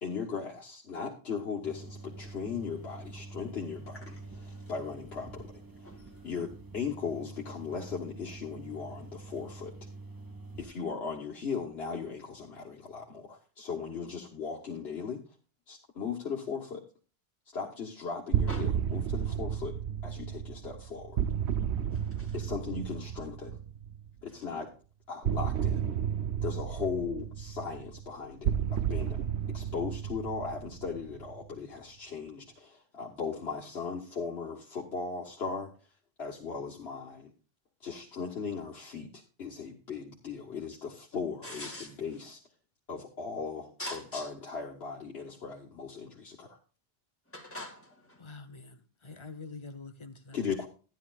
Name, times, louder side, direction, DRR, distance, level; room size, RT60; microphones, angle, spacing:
voice 1, 0.0-4.1 4.5-5.6 6.2-9.7 10.6-15.2 15.7-16.8 17.5-21.2 22.3-23.6 24.2-24.7 25.1-25.8 26.4-29.2 29.5-35.7 36.2-37.3 37.8-42.4 42.9-46.6 50.3-50.7, left 5 dB, 75° left, 1.6 m, -38 dB
sound 1, 1.6-10.6, right 3 dB, 20° right, 1.4 m, -46 dB
voice 2, 5.8-6.3 18.5-18.7 21.9-22.4 41.4-42.0 43.8-44.3 47.3-48.4, left 1 dB, 10° left, 2.2 m, -43 dB
sound 2, 18.3-24.1 25.2-31.5, right 9 dB, 90° right, 1.0 m, -32 dB
voice 3, 48.2-50.4, left 3 dB, 30° left, 1.0 m, -46 dB
13.0 x 10.5 x 2.4 m
omnidirectional pair, 1.1 m